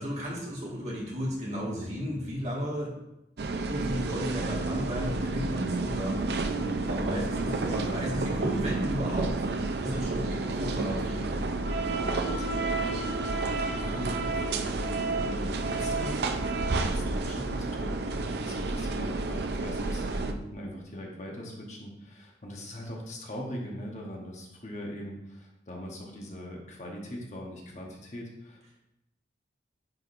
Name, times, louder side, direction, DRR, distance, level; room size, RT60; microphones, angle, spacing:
voice 1, 0.0-2.9 3.7-6.2 6.9-9.5 9.8-11.6, equal, 35° right, -4 dB, 1.7 m, -34 dB
sound 1, 3.4-20.3, right 3 dB, 65° right, 0.5 m, -30 dB
voice 2, 6.4-7.0 11.8-28.8, equal, 40° left, -1 dB, 1.0 m, -41 dB
9.5 x 4.9 x 2.6 m, 0.88 s
head